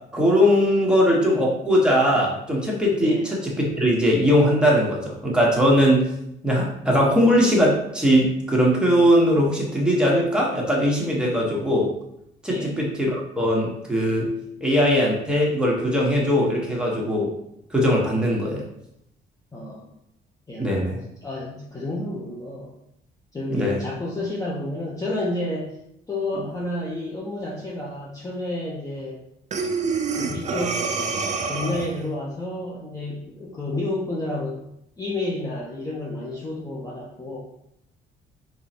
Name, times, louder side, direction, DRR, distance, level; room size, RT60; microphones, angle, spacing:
voice 1, 0.1-3.5 3.8-6.0 6.4-11.9 12.4-14.3 14.6-17.3 17.7-18.6 20.6-21.0 23.5-23.8, equal, 5° right, -4 dB, 1.2 m, -20 dB
voice 2, 19.5-19.9 20.5-20.8 21.2-22.7 23.3-25.7 26.1-29.2 30.1-30.8 31.5-34.6 35.0-37.4, left 2 dB, 15° left, -5 dB, 0.7 m, -30 dB
Breathing, 29.5-32.1, right 4 dB, 35° right, 0.4 m, -27 dB
3.8 x 3.1 x 2.9 m, 0.77 s
cardioid pair, 90°, 20 cm